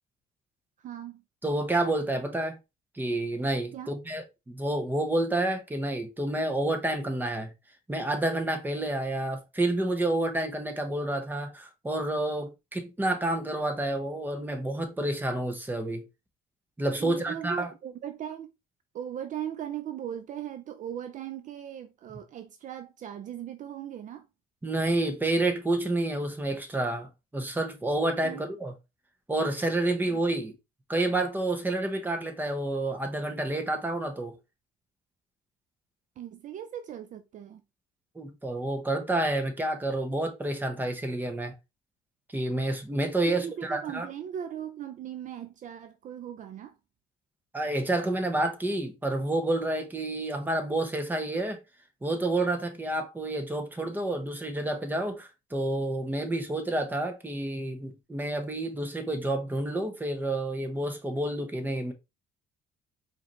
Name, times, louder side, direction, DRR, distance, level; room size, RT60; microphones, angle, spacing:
voice 1, 0.8-1.2 3.7-4.0 17.0-18.5 18.9-24.3 28.2-28.4 30.1-30.2 36.2-37.6 43.3-46.8, right 10 dB, 50° right, 0.4 m, -38 dB
voice 2, 1.4-2.6 2.9-7.5 7.9-16.0 16.8-17.7 24.6-28.7 29.3-30.5 30.9-34.3 38.1-41.5 42.3-44.1 47.5-51.6 52.0-61.9, right 1 dB, 10° right, 1.1 m, -29 dB
4.8 x 2.9 x 3.1 m
cardioid pair, 110°, 17 cm